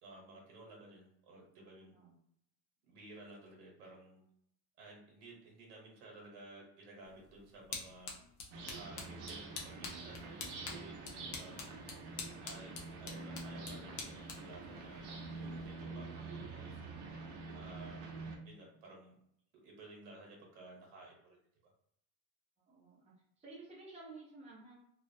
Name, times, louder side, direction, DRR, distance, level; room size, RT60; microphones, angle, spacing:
voice 1, 0.0-1.9 2.9-4.2 4.8-8.1 8.8-11.7 12.4-12.7 13.0-16.8 17.5-18.1 18.4-19.1 19.6-21.4, right 2 dB, 85° right, -2 dB, 1.0 m, -55 dB
sound 1, 7.0-15.8, left 4 dB, 50° left, 0.6 m, -48 dB
sound 2, 8.5-18.4, right 3 dB, 70° right, 0.7 m, -46 dB
voice 2, 22.6-24.8, right 3 dB, 15° right, -6 dB, 0.5 m, -53 dB
2.4 x 2.1 x 2.6 m, 0.72 s
cardioid pair, 175°, 44 cm